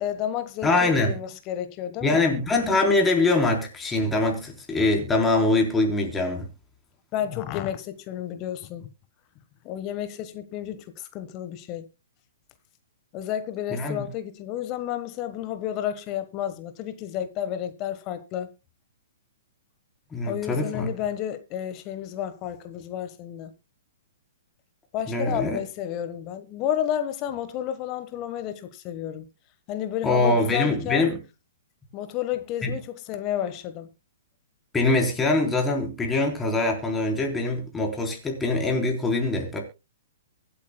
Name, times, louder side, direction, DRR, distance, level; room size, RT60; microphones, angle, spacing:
voice 1, 0.0-2.3 7.1-8.9 9.6-11.9 13.1-18.5 20.2-23.5 24.9-29.3 29.7-31.1 31.9-33.9, left 11 dB, 35° left, 1.3 m, -31 dB
voice 2, 0.6-1.1 2.0-6.5 13.7-14.1 20.1-20.9 25.1-25.6 30.0-31.2 32.6-32.7 34.7-39.6, left 2 dB, 10° left, 3.8 m, -23 dB
23.5 x 8.7 x 2.3 m
hypercardioid pair, 120°, 0 cm